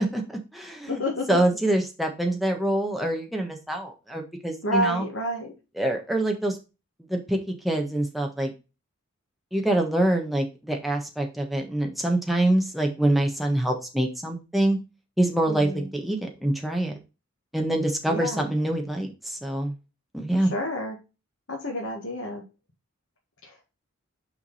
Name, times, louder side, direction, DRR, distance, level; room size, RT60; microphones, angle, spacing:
voice 1, 0.0-1.0 1.3-5.1 5.8-6.6 7.1-8.5 9.5-14.8 15.2-17.0 17.5-19.7 20.1-20.5, right 1 dB, ahead, 1 dB, 1.3 m, -25 dB
voice 2, 0.9-1.4 4.6-5.5 15.5-15.9 18.1-18.5 20.4-21.0 21.5-22.4 23.4-23.5, left 1 dB, 60° left, -2 dB, 1.8 m, -29 dB
6.0 x 5.1 x 4.1 m, 0.29 s
head